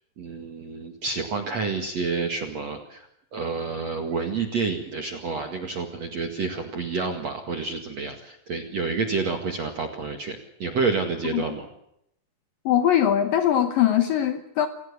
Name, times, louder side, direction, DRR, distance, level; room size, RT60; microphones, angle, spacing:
voice 1, 0.2-11.7, right 4 dB, 45° right, 2.6 m, -29 dB
voice 2, 12.7-14.7, left 10 dB, 70° left, 2.3 m, -21 dB
28.5 x 17.5 x 8.4 m
omnidirectional pair, 5.0 m